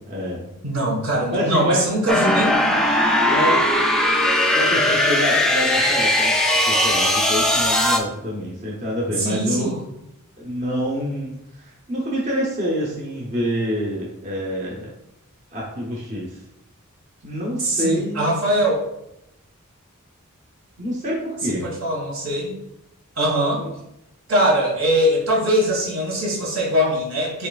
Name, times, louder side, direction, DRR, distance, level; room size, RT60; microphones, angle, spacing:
voice 1, 0.1-0.5 1.3-1.8 3.2-3.7 4.5-6.3 6.7-9.7 10.4-14.9 15.5-16.4 17.2-18.3 20.8-21.7 23.6-23.7, equal, 30° right, -4 dB, 0.8 m, -26 dB
voice 2, 0.6-2.8 9.2-9.8 17.6-18.8 21.4-22.6 23.2-23.6 24.3-27.5, equal, 65° right, -2 dB, 1.7 m, -22 dB
sound 1, 2.1-8.0, left 1 dB, 5° left, 0.4 m, -19 dB
5.6 x 4.0 x 2.4 m, 0.84 s
head